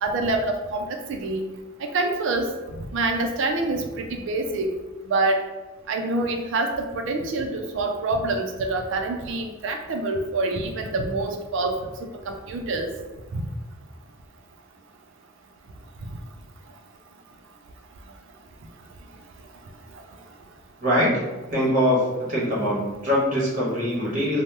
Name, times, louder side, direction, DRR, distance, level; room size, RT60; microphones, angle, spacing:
voice 1, 0.0-1.5 1.9-2.5 2.9-4.7 5.1-5.4 5.9-11.8 12.3-12.9 13.3-13.4, right 2 dB, 65° right, 4 dB, 0.4 m, -26 dB
voice 2, 20.8-21.1 21.5-22.0 22.3-24.4, equal, 40° right, -6 dB, 1.1 m, -22 dB
2.9 x 2.0 x 3.2 m, 1.2 s
head